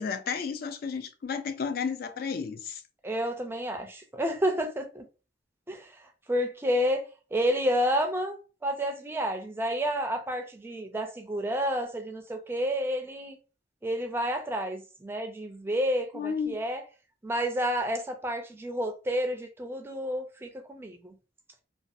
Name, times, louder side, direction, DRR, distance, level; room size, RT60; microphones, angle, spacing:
voice 1, 0.0-2.8 16.1-16.6, left 6 dB, 55° left, 0.3 m, -32 dB
voice 2, 3.0-5.0 5.7-13.4 13.8-16.8 17.2-21.1, equal, 15° right, 0.4 m, -30 dB
2.6 x 2.3 x 2.4 m
head